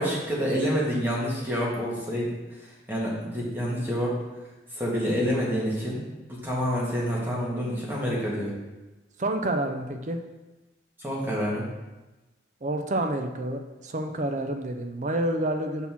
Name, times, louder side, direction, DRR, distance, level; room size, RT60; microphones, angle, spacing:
voice 1, 0.0-4.1 4.7-6.0 6.4-8.5 11.0-11.7, equal, 10° right, -6 dB, 1.7 m, -28 dB
voice 2, 9.2-10.2 12.6-15.9, right 1 dB, 40° right, 5 dB, 0.5 m, -28 dB
5.4 x 4.2 x 5.9 m, 1.1 s
head